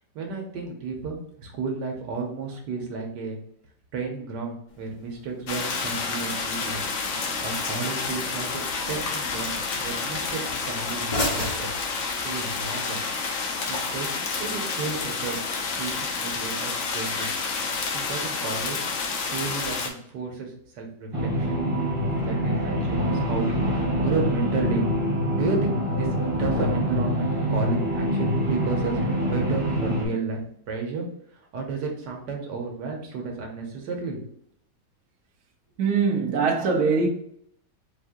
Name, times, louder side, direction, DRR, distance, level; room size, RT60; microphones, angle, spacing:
voice 1, 0.1-3.4 3.9-6.8 7.4-11.7 12.2-13.0 13.7-14.1 14.4-15.4 15.8-17.3 17.9-18.8 19.2-21.6 22.2-24.9 25.3-26.1 26.4-30.4 30.7-31.1 31.3-34.2, right 4 dB, 80° right, 1.5 m, -32 dB
sound 1, 4.7-12.7, left 1 dB, 30° left, 1.0 m, -37 dB
sound 2, 5.5-19.9, left 4 dB, 60° left, 0.8 m, -29 dB
sound 3, 21.1-30.0, equal, 20° right, 1.0 m, -25 dB
voice 2, 35.8-37.1, right 5 dB, 60° right, 1.2 m, -22 dB
4.6 x 2.7 x 3.6 m
omnidirectional pair, 1.8 m